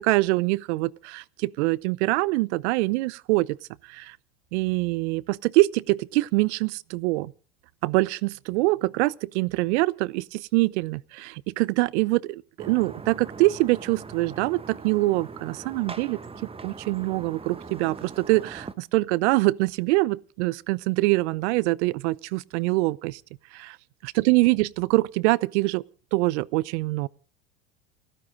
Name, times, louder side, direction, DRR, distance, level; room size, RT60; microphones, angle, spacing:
voice 1, 0.0-3.6 3.8-4.2 4.5-7.3 7.8-23.2 23.5-23.8 24.0-25.8 26.1-27.1, right 21 dB, 65° right, 0.8 m, -24 dB
sound 1, 12.6-18.7, right 4 dB, 15° right, 1.3 m, -41 dB
30.0 x 10.0 x 3.8 m
hypercardioid pair, 90°, 36 cm